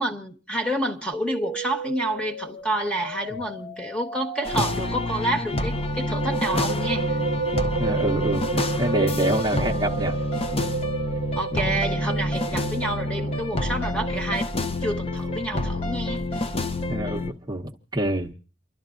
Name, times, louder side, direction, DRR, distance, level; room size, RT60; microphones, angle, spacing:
voice 1, 0.0-7.2 11.4-16.2, right 1 dB, 5° left, 1.3 m, -29 dB
sound 1, 1.1-11.1, right 1 dB, 75° left, 1.5 m, -39 dB
sound 2, 2.6-2.9 3.1-3.2 5.7-17.1, right 5 dB, 90° right, 0.6 m, -32 dB
sound 3, 4.4-17.3, left 1 dB, 30° left, 0.6 m, -28 dB
voice 2, 7.8-10.2 16.9-18.3, right 1 dB, 20° right, 0.9 m, -26 dB
29.0 x 12.5 x 2.5 m
head